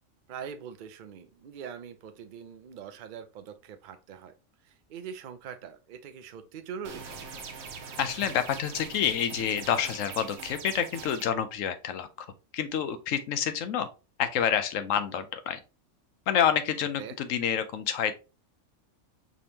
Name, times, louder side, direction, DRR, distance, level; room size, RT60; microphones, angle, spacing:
voice 1, 0.3-4.3 4.6-7.1 17.0-17.2, right 7 dB, 55° right, 0.5 m, -42 dB
sound 1, 6.8-11.2, right 5 dB, 85° right, 1.3 m, -42 dB
voice 2, 8.0-12.3 12.5-13.9 14.2-15.6 16.3-18.1, left 8 dB, 75° left, 1.0 m, -28 dB
5.1 x 3.5 x 2.8 m
omnidirectional pair, 1.4 m